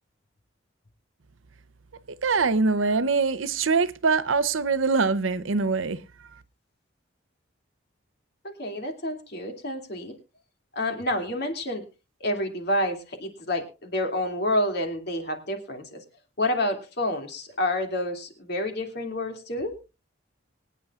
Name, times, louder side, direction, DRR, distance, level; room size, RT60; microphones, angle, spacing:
voice 1, 2.2-6.0, right 4 dB, 85° right, 0.8 m, -23 dB
voice 2, 8.6-10.1 10.7-11.8 12.2-16.0 16.4-19.7, left 1 dB, 55° left, 2.6 m, -28 dB
24.0 x 9.4 x 2.4 m
head